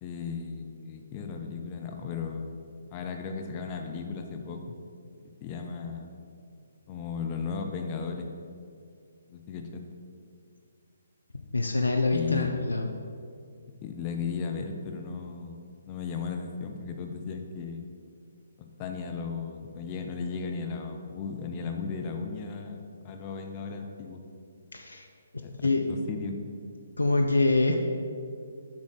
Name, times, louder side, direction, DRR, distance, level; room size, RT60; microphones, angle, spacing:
voice 1, 0.0-2.5 2.9-4.8 5.4-6.1 6.9-8.3 9.3-9.8 12.1-12.5 13.8-17.9 18.8-22.8 23.0-24.2 25.4-26.4, left 5 dB, 30° left, 4 dB, 0.6 m, -35 dB
voice 2, 11.5-12.9 24.7-25.1 25.3-25.8 27.0-27.8, left 2 dB, 80° left, 3 dB, 0.5 m, -25 dB
7.3 x 3.8 x 6.3 m, 2.3 s
figure-of-eight pair, 135°, 0 cm